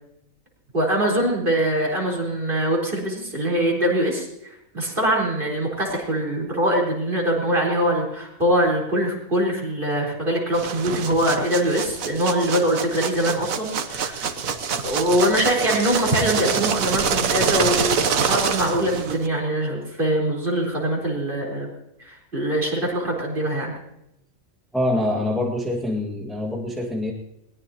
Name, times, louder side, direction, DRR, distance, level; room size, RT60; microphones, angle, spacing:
voice 1, 0.7-14.3 14.8-21.7 22.0-23.7, right 1 dB, 40° right, -1 dB, 4.4 m, -23 dB
sound 1, 10.5-19.3, right 6 dB, 80° right, 1.4 m, -25 dB
voice 2, 24.7-27.1, left 1 dB, ahead, -1 dB, 1.9 m, -25 dB
21.5 x 19.0 x 2.9 m, 0.83 s
omnidirectional pair, 1.4 m